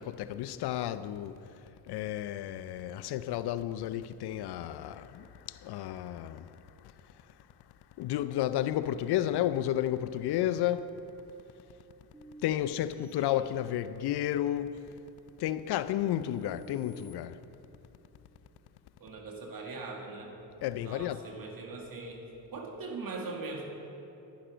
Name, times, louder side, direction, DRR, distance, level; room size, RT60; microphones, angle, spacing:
voice 1, 0.0-1.4 1.9-6.5 8.0-10.9 12.4-14.8 15.4-17.4 20.6-21.2, left 12 dB, 65° left, 0.5 m, -32 dB
sound 1, 12.1-14.1 14.6-17.2, right 3 dB, 10° right, 2.1 m, -53 dB
voice 2, 13.0-13.4 19.0-20.3 20.8-23.7, right 3 dB, 55° right, 2.3 m, -41 dB
11.5 x 10.5 x 5.0 m
supercardioid pair, 70°, 42 cm